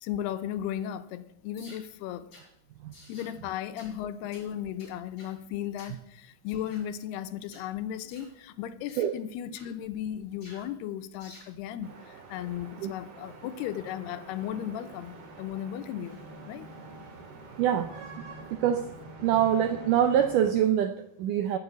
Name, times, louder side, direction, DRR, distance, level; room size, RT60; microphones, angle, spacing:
voice 1, 0.0-2.3 3.1-16.7, left 10 dB, 85° left, 2.8 m, -36 dB
sound 1, 1.5-1.8 2.3-2.5 2.9-3.3 3.8-3.9 4.3-4.5 4.8-5.3 5.8-6.0 6.5-6.9 7.4-7.7 8.1-8.3 8.9-9.1 9.5-9.7 10.4-10.7 11.2-11.5, left 1 dB, 35° left, 6.3 m, -52 dB
sound 2, 11.8-20.5, right 2 dB, 45° right, 2.4 m, -47 dB
voice 2, 17.6-18.9 19.2-21.6, right 9 dB, 80° right, 1.8 m, -25 dB
14.5 x 7.6 x 8.1 m
omnidirectional pair, 4.6 m